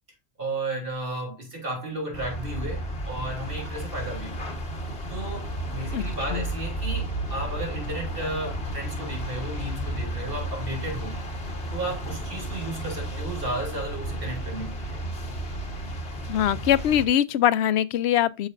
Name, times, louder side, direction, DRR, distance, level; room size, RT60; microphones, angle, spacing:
voice 1, 0.4-4.5 5.1-11.2 11.7-15.0, right 2 dB, 60° right, 3.7 m, -34 dB
sound 1, 2.1-17.1, right 1 dB, 65° left, 1.7 m, -33 dB
voice 2, 16.3-18.5, left 11 dB, 80° left, 0.8 m, -22 dB
10.0 x 6.4 x 2.6 m
omnidirectional pair, 1.1 m